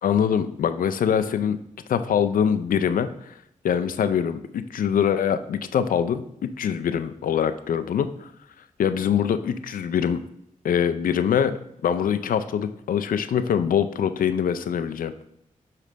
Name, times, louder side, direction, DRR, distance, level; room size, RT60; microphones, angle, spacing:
voice 1, 0.0-1.6 1.9-3.3 3.6-6.2 6.6-8.3 8.8-10.2 10.6-15.1, left 8 dB, 85° left, 11 dB, 0.4 m, -23 dB
6.5 x 3.3 x 5.0 m, 0.75 s
cardioid pair, 65°, 14 cm